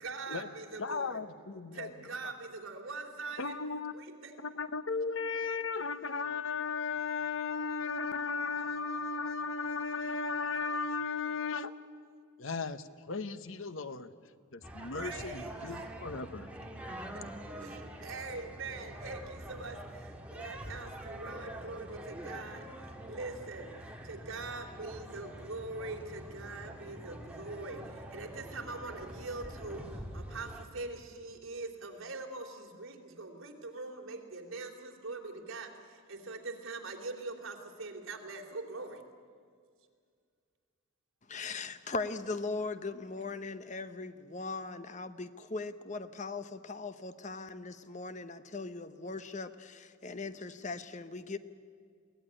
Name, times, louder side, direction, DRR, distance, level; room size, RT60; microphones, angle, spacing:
voice 1, 0.0-1.2 1.8-2.3 2.6-3.6 14.9-15.5 18.0-19.2 19.5-19.8 20.4-21.9 22.2-22.6 23.1-23.6 24.1-27.8 28.1-29.8 30.1-30.5 30.7-32.5 32.8-35.7 36.3-39.0, right 3 dB, 80° right, 2 dB, 3.0 m, -42 dB
voice 2, 0.8-1.9 3.4-3.9 4.4-11.7 12.4-14.1 14.5-16.5, left 4 dB, 70° left, 12 dB, 1.0 m, -36 dB
sound 1, 14.6-30.6, right 1 dB, 5° right, 1.8 m, -45 dB
voice 3, 41.3-51.4, left 3 dB, 35° left, 11 dB, 0.8 m, -39 dB
22.5 x 17.0 x 9.9 m, 2.1 s
head